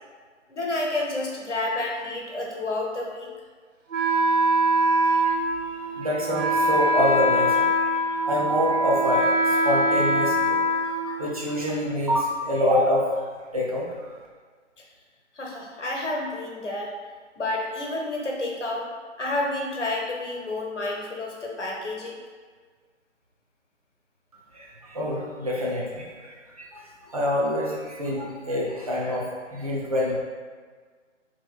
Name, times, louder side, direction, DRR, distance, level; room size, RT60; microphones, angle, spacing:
voice 1, 0.5-3.3 15.3-16.9 17.4-18.9 19.2-22.2, left 2 dB, 70° left, -1 dB, 0.9 m, -30 dB
Wind instrument woodwind instrument, 3.9-11.6, equal, 85° right, 0.6 m, -23 dB
voice 2, 5.1-5.7 6.0-13.2 13.5-14.1 24.5-29.3 29.5-30.1, left 1 dB, 30° right, -5 dB, 0.6 m, -27 dB
4.2 x 2.9 x 2.3 m, 1.5 s
figure-of-eight pair, 150°, 37 cm